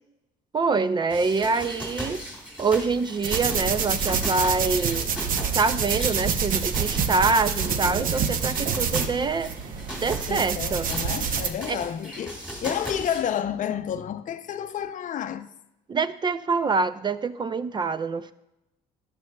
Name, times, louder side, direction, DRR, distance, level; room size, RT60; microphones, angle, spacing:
voice 1, 0.5-2.2 2.6-5.1 5.5-9.5 10.0-10.9 11.7-11.8 15.9-18.3, right 4 dB, 25° right, 0.4 m, -25 dB
sound 1, 1.1-13.2, equal, 5° right, 2.5 m, -38 dB
sound 2, 3.2-11.5, right 6 dB, 55° right, 0.8 m, -27 dB
voice 2, 10.3-15.5, left 9 dB, 50° left, 0.5 m, -30 dB
14.5 x 11.0 x 2.3 m
cardioid pair, 110°, 17 cm